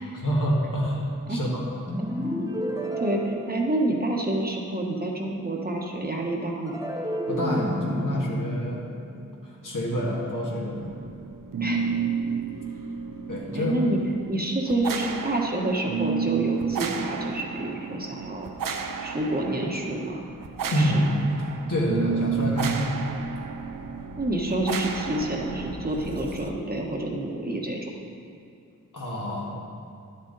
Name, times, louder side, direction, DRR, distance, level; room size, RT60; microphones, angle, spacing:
voice 1, 0.1-1.6 7.3-8.8 9.4-10.9 13.3-13.8 20.7-21.1 21.7-23.0 28.9-29.6, equal, 75° left, -4 dB, 2.1 m, -27 dB
sound 1, 1.9-4.2 6.7-10.0, equal, 10° right, 1.1 m, -32 dB
voice 2, 3.0-6.8 11.6-11.9 13.5-14.0 14.3-18.5 19.0-20.3 20.6-21.0 24.2-27.9, right 1 dB, 30° right, -1 dB, 1.3 m, -28 dB
sound 2, 10.6-26.5, right 6 dB, 80° right, 0.6 m, -32 dB
11.5 x 6.6 x 4.1 m, 2.5 s
wide cardioid pair, 55°, 33 cm